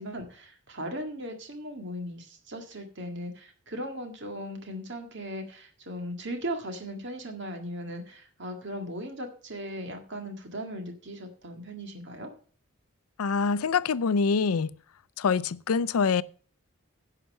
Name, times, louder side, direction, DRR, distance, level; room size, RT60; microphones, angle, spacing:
voice 1, 0.0-12.3, equal, 50° right, 1.9 m, -38 dB
voice 2, 13.2-14.7 15.2-16.2, left 5 dB, 75° left, 0.5 m, -25 dB
11.0 x 5.8 x 7.5 m
head